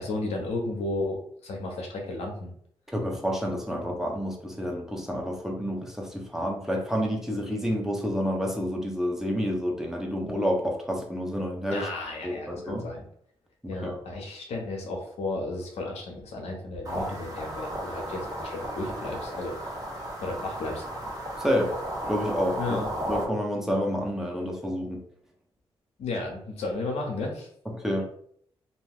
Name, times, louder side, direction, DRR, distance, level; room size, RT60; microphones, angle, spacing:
voice 1, 0.0-2.5 11.7-13.0 13.7-19.7 20.2-20.8 22.6-22.9 26.0-27.5, left 2 dB, 80° left, 1 dB, 0.7 m, -33 dB
voice 2, 2.9-11.9 12.2-12.9 13.6-14.0 21.4-21.7 22.1-22.6 23.1-25.0 27.7-28.2, equal, 5° right, 0 dB, 0.9 m, -29 dB
sound 1, 16.8-23.2, right 1 dB, 35° right, 1.3 m, -34 dB
2.5 x 2.2 x 3.4 m, 0.64 s
supercardioid pair, 50°, 11 cm